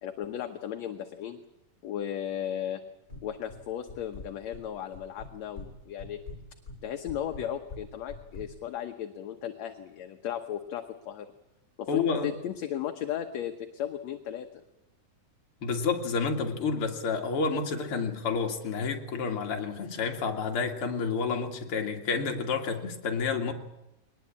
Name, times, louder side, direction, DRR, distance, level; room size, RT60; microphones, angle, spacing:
voice 1, 0.0-1.4 1.8-2.8 3.2-6.2 6.8-11.3 11.8-14.5, left 10 dB, 65° left, 2.1 m, -35 dB
sound 1, 3.1-3.6 3.9-4.6 4.9-5.7 6.0-8.5, left 3 dB, 25° left, 5.2 m, -43 dB
voice 2, 11.9-12.3 15.6-23.5, left 5 dB, 45° left, 2.8 m, -29 dB
22.0 x 20.0 x 8.6 m
omnidirectional pair, 3.7 m